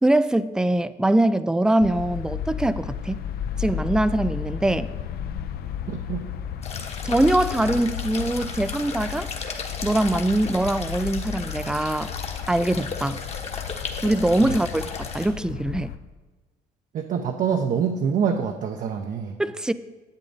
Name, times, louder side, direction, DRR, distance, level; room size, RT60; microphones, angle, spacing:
voice 1, 0.0-3.2 3.6-4.9 7.0-9.3 9.8-12.1 12.5-13.2 14.0-15.9 19.4-19.7, right 1 dB, 5° right, 14 dB, 0.3 m, -22 dB
sound 1, 1.8-16.0, left 9 dB, 65° left, 0.7 m, -33 dB
voice 2, 5.9-6.2 14.4-14.6 16.9-19.4, right 7 dB, 50° right, 4 dB, 0.7 m, -25 dB
sound 2, 6.6-15.3, left 4 dB, 40° left, 1.3 m, -35 dB
10.5 x 8.2 x 4.0 m, 1.2 s
cardioid pair, 110°, 17 cm